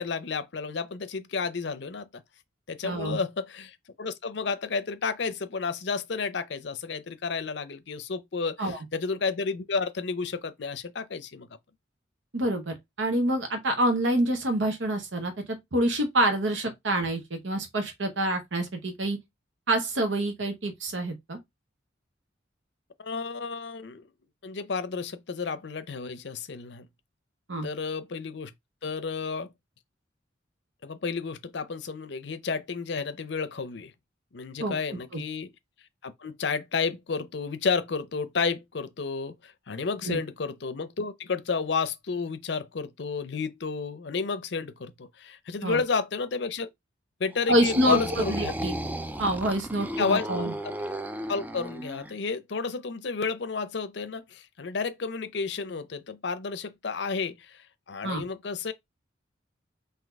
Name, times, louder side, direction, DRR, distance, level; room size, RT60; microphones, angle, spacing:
voice 1, 0.0-2.1 2.7-11.5 23.0-24.1 24.4-26.9 27.6-28.5 28.8-29.5 30.8-33.9 34.3-35.5 36.0-46.7 47.2-48.5 50.0-50.3 50.6-50.7 51.3-58.7, left 4 dB, 60° left, 0.6 m, -31 dB
voice 2, 2.8-3.2 8.6-8.8 12.3-19.2 19.7-21.4 27.5-27.7 34.6-35.2 40.0-40.2 45.6-45.8 47.5-48.7 49.2-50.5 58.0-58.2, right 1 dB, 75° right, 0.9 m, -27 dB
sound 1, 47.3-52.1, right 1 dB, 10° right, 0.3 m, -34 dB
4.0 x 2.8 x 4.4 m
head